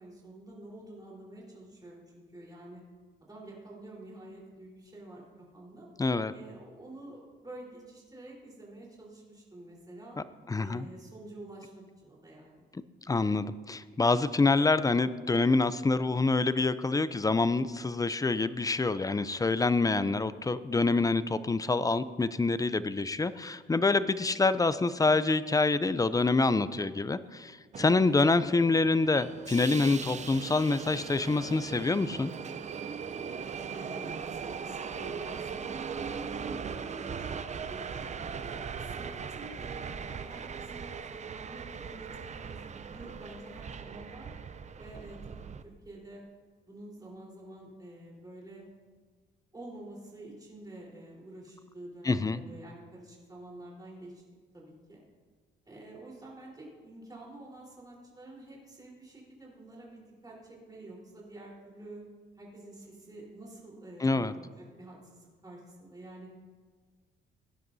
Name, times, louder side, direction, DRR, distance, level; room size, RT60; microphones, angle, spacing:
voice 1, 0.0-2.8 3.2-5.9 6.3-10.2 10.6-12.6 33.7-37.4 37.7-44.3 44.8-46.2 46.7-48.6 49.5-54.2 54.5-55.0 55.7-62.0 62.4-66.3, right 1 dB, 20° right, -3 dB, 3.9 m, -48 dB
voice 2, 6.0-6.3 10.5-10.9 13.1-32.3 52.0-52.4 64.0-64.3, left 3 dB, 15° left, 14 dB, 0.4 m, -26 dB
Subway metro underground, 27.7-45.6, right 6 dB, 35° right, 0.6 m, -39 dB
17.5 x 10.5 x 2.7 m, 1.5 s
cardioid pair, 90°, 20 cm